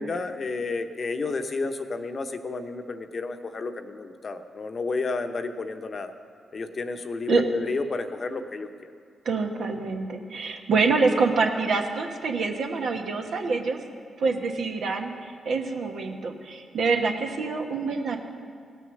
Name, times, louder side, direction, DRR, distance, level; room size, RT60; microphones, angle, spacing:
voice 1, 0.0-6.1 6.5-8.9, left 3 dB, 50° left, 7 dB, 0.8 m, -31 dB
voice 2, 9.2-13.8 14.2-15.1 15.4-18.2, right 4 dB, 70° right, 3 dB, 1.2 m, -26 dB
16.5 x 6.4 x 6.6 m, 2.1 s
supercardioid pair, 45°, 0 cm